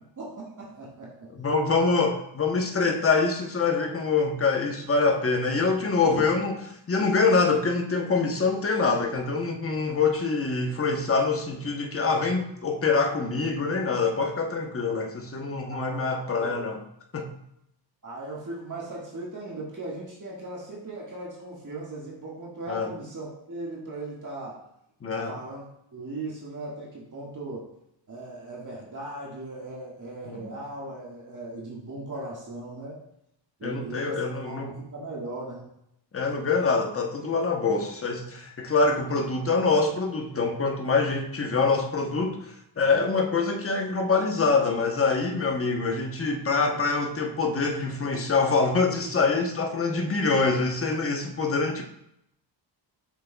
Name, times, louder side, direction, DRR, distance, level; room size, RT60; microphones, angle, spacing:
voice 1, 0.2-1.3 6.1-6.3 7.0-7.1 15.6-16.7 18.0-24.5 25.3-25.6 25.9-27.7 28.1-33.0 33.6-35.7, right 2 dB, 40° right, -5 dB, 1.7 m, -38 dB
voice 2, 1.3-6.5 6.9-16.8 17.1-17.3 22.7-22.9 25.0-25.3 30.3-30.5 33.6-34.7 36.1-51.8, left 4 dB, 30° left, 3 dB, 0.9 m, -25 dB
7.3 x 6.4 x 2.3 m, 0.78 s
wide cardioid pair, 105°, 46 cm